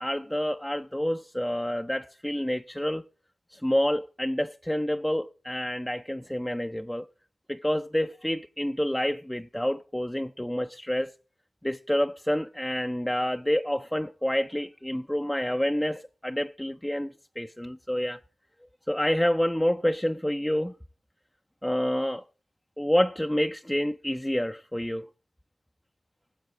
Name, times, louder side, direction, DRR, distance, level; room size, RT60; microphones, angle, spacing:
voice 1, 0.0-3.1 3.5-7.1 7.5-11.1 11.6-18.2 18.9-20.7 21.6-22.2 22.8-25.1, equal, 5° left, 0.4 m, -28 dB
16.5 x 7.3 x 3.6 m
cardioid pair, 40°, 0 cm